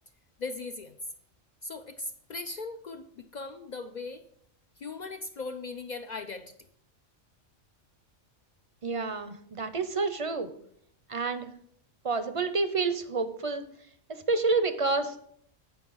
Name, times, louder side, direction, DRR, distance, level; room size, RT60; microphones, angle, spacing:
voice 1, 0.4-1.0 1.6-4.2 4.8-6.5, left 3 dB, 60° left, 8 dB, 0.4 m, -39 dB
voice 2, 8.8-10.5 11.1-11.5 12.0-13.6 14.1-15.2, right 3 dB, 40° right, 10 dB, 0.5 m, -29 dB
9.7 x 5.3 x 5.5 m, 0.68 s
omnidirectional pair, 1.3 m